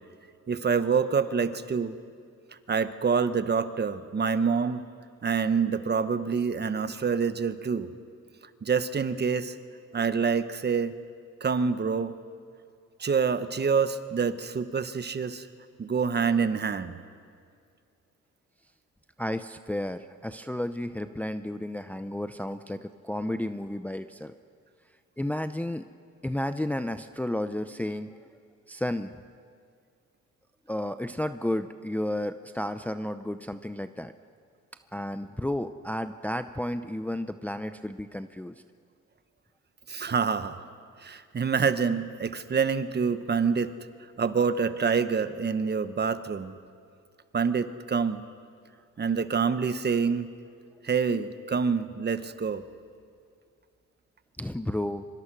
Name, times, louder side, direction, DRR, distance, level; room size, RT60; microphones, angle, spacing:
voice 1, 0.5-1.9 2.7-4.8 5.2-7.9 8.6-9.5 9.9-11.0 11.4-12.2 13.0-15.5 15.8-17.0 39.9-40.6 41.0-43.7 44.2-46.5 47.3-48.2 49.0-50.3 50.8-52.6, right 5 dB, 35° right, 11 dB, 1.1 m, -26 dB
voice 2, 19.2-24.3 25.2-25.8 26.2-28.1 28.7-29.1 30.7-34.1 34.9-38.5 54.4-55.0, left 1 dB, 5° left, 10 dB, 0.6 m, -32 dB
24.5 x 24.0 x 6.2 m, 2.2 s
cardioid pair, 90°, 30 cm